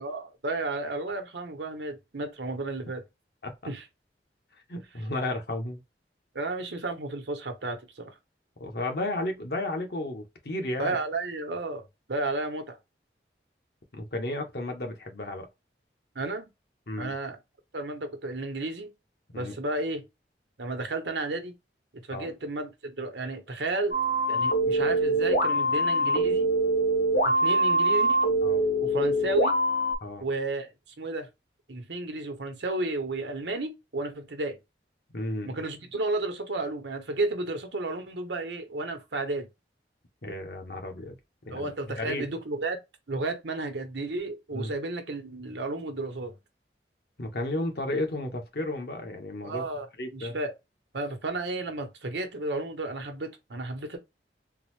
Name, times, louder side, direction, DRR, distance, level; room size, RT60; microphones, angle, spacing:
voice 1, 0.0-3.0 3.7-3.8 6.3-8.1 10.8-11.8 12.1-12.8 16.1-16.5 17.0-17.4 17.7-18.9 19.3-20.0 20.6-21.5 22.1-23.9 24.3-26.5 27.2-28.4 28.8-29.6 30.2-31.3 31.7-34.6 35.4-39.5 41.5-42.8 43.1-46.4 49.4-49.9 50.1-50.5 50.9-54.0, right 2 dB, 85° right, 1.0 m, -32 dB
voice 2, 4.7-5.8 8.6-11.0 13.9-15.5 16.9-17.2 19.3-19.5 22.1-22.3 28.4-28.6 30.0-30.2 35.1-35.6 40.2-41.2 41.5-41.7 42.0-42.3 44.5-44.7 47.2-49.7 50.0-50.4, left 1 dB, 60° left, 1.0 m, -33 dB
sound 1, 23.9-30.0, right 1 dB, 80° left, 1.1 m, -24 dB
3.8 x 2.1 x 3.0 m
head